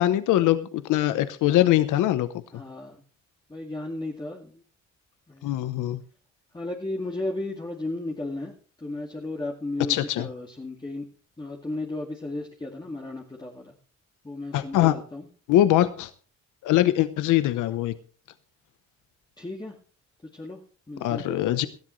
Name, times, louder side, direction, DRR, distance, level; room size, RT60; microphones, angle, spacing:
voice 1, 0.0-2.3 5.4-6.0 9.9-10.3 14.5-14.9 15.5-16.1 16.6-17.9 21.0-21.7, left 14 dB, 90° left, 13 dB, 0.9 m, -22 dB
voice 2, 2.5-3.0 3.5-4.6 5.3-5.6 6.5-8.5 8.8-11.0 11.4-13.7 14.2-15.3 19.4-19.8 20.3-20.6 20.9-21.6, left 2 dB, 15° left, 0 dB, 2.2 m, -34 dB
18.5 x 13.0 x 3.2 m, 0.39 s
cardioid pair, 90°, 30 cm